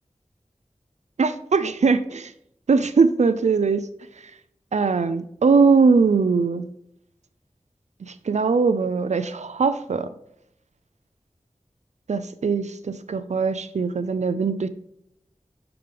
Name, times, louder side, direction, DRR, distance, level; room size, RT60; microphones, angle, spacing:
voice 1, 1.2-2.3 2.7-3.9 4.2-4.3 4.7-6.7 8.0-10.1 12.1-14.7, right 4 dB, 80° right, 11 dB, 0.4 m, -21 dB
5.9 x 5.0 x 3.4 m, 0.74 s
wide cardioid pair, 55°, 12 cm